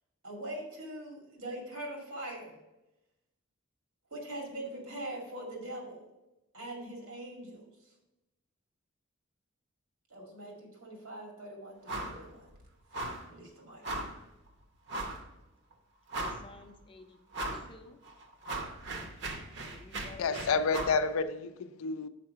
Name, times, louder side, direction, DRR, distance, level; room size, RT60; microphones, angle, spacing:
voice 1, 0.2-2.6 4.1-6.1 6.5-7.7 10.1-12.5 13.2-13.8, right 1 dB, 85° right, 2.2 m, -42 dB
sound 1, 11.9-12.2 12.5-12.6 12.9-13.3 13.8-14.2 14.9-15.2 15.7-15.8 16.1-16.6 17.3-17.7 18.1-21.0, right 2 dB, 55° right, 0.8 m, -38 dB
voice 2, 16.1-17.2 17.5-18.0 19.6-20.7, left 3 dB, 25° left, 0.5 m, -53 dB
voice 3, 20.2-22.1, left 4 dB, 75° left, 0.4 m, -29 dB
5.8 x 4.7 x 5.5 m
head